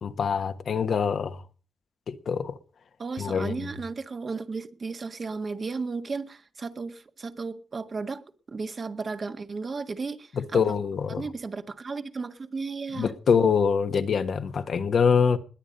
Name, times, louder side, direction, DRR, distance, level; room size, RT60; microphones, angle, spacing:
voice 1, 0.0-1.4 2.1-2.6 3.2-3.7 10.3-11.2 12.9-15.4, left 6 dB, 75° left, 1.4 m, -24 dB
voice 2, 3.0-10.6 11.1-13.1, right 4 dB, 50° right, 1.7 m, -34 dB
20.5 x 9.2 x 5.3 m
cardioid pair, 85°, 0 cm